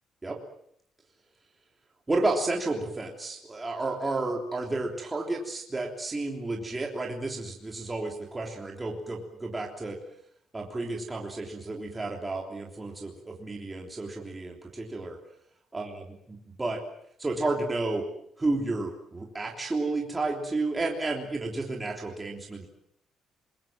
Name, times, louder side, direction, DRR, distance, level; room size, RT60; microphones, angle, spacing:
voice 1, 2.1-10.0 10.5-15.2 15.7-16.8 17.2-18.1 18.4-22.7, right 2 dB, 15° right, 0 dB, 3.3 m, -31 dB
27.0 x 22.0 x 7.6 m, 0.70 s
cardioid pair, 145°, 0 cm